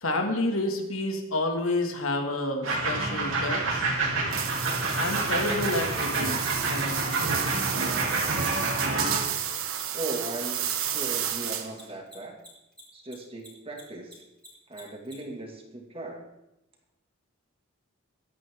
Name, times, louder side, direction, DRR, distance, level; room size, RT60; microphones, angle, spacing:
voice 1, 0.0-3.8 4.9-7.2, left 2 dB, 80° left, 3 dB, 2.2 m, -29 dB
sound 1, 2.6-9.2, right 3 dB, 65° right, 3.3 m, -28 dB
sound 2, 4.3-11.9, right 10 dB, 85° right, 1.3 m, -32 dB
Mechanisms, 6.4-13.1 13.4-15.1, right 1 dB, 5° left, 4.3 m, -48 dB
voice 2, 9.9-12.4 12.9-14.2 14.7-16.2, right 2 dB, 25° right, 1 dB, 2.3 m, -38 dB
23.0 x 9.8 x 3.8 m, 0.90 s
head